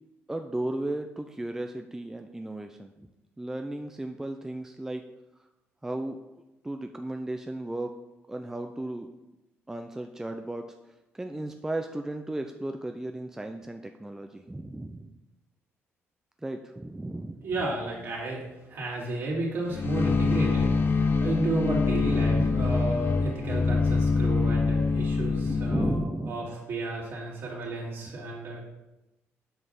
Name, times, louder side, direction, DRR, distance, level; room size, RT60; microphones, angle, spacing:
voice 1, 0.3-3.1 3.4-5.0 5.8-7.9 8.3-9.1 9.7-10.7 11.1-15.1 16.4-17.5 21.8-22.7 25.5-26.5, right 1 dB, 10° right, 5 dB, 0.5 m, -35 dB
voice 2, 17.4-26.0 26.3-28.7, right 2 dB, 55° right, -4 dB, 3.3 m, -32 dB
sound 1, 19.7-26.1, left 4 dB, 50° left, 0.9 m, -25 dB
7.9 x 5.2 x 5.8 m, 0.96 s
cardioid pair, 105°, 5 cm